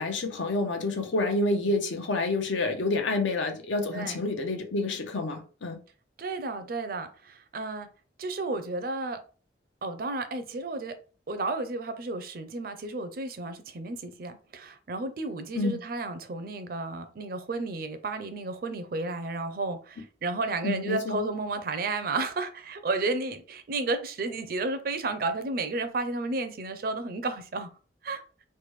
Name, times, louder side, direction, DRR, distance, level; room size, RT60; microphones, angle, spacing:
voice 1, 0.0-5.8 15.5-15.8 20.6-21.2, left 2 dB, 85° left, 0.7 m, -28 dB
voice 2, 6.2-7.9 8.2-9.2 9.8-10.9 11.3-27.7 28.0-28.2, right 3 dB, 50° right, 0.4 m, -32 dB
3.3 x 2.2 x 3.1 m
head